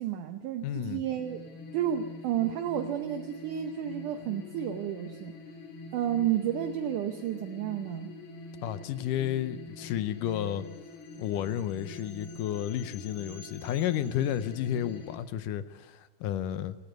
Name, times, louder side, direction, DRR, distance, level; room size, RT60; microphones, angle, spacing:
voice 1, 0.0-1.4 1.7-5.4 5.9-8.1, right 10 dB, 75° right, 2.3 m, -31 dB
voice 2, 0.6-1.0 8.6-10.7 11.2-16.8, left 11 dB, 80° left, 2.3 m, -32 dB
sound 1, 1.0-15.2, left 2 dB, 55° left, 3.8 m, -45 dB
18.5 x 15.5 x 9.4 m
omnidirectional pair, 3.9 m